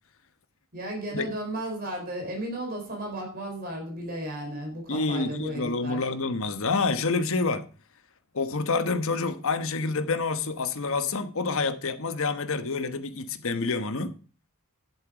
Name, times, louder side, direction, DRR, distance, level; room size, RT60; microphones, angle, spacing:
voice 1, 0.7-6.1, right 1 dB, 45° right, 4.2 m, -34 dB
voice 2, 4.9-7.7 8.3-14.2, left 3 dB, 65° left, 1.1 m, -28 dB
11.0 x 7.5 x 4.9 m
head